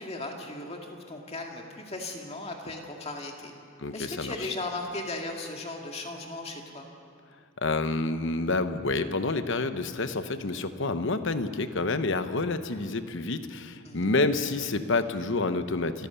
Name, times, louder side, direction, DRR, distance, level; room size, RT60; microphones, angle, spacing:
voice 1, 0.0-3.5 3.9-6.9 13.8-14.1, left 2 dB, 30° left, 1 dB, 2.1 m, -37 dB
voice 2, 3.8-4.5 7.6-16.1, left 3 dB, 55° left, 10 dB, 0.9 m, -28 dB
28.5 x 14.5 x 7.0 m, 2.4 s
head